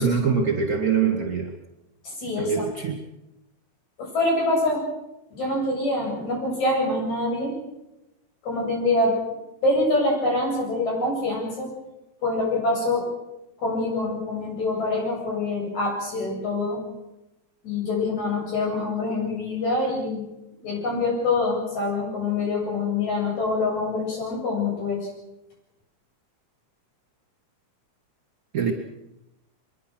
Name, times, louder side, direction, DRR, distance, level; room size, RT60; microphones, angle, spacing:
voice 1, 0.0-1.5 2.4-3.0 28.5-28.7, right 6 dB, 30° right, 2 dB, 2.6 m, -23 dB
voice 2, 2.0-2.6 4.0-4.8 5.3-7.6 8.4-9.2 9.6-11.7 12.2-13.1 13.6-16.8 17.6-20.3 20.6-25.1, left 2 dB, 65° left, -2 dB, 9.4 m, -25 dB
24.0 x 22.5 x 6.5 m, 0.92 s
omnidirectional pair, 3.5 m